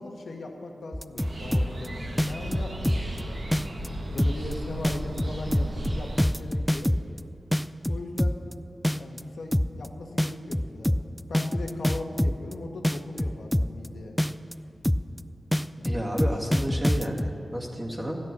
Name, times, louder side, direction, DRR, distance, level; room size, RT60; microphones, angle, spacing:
voice 1, 0.0-3.4 4.1-6.9 7.9-8.4 8.9-11.0 11.3-14.1 15.8-15.9 16.5-16.6, left 2 dB, 80° left, 2 dB, 1.4 m, -39 dB
sound 1, 0.9-1.9 2.2-3.2 3.5-3.9 4.2-4.5 4.8-7.2 7.5-8.5 8.8-9.2 9.5-9.9 10.2-12.5 12.8-13.9 14.2-14.5 14.8-15.2 15.5-17.3, left 1 dB, 5° left, 0.4 m, -25 dB
sound 2, 1.2-6.2, right 1 dB, 65° right, 1.9 m, -35 dB
voice 2, 15.8-18.2, equal, 25° right, -2 dB, 2.4 m, -31 dB
14.0 x 10.5 x 6.1 m, 2.9 s
cardioid pair, 55°, 0 cm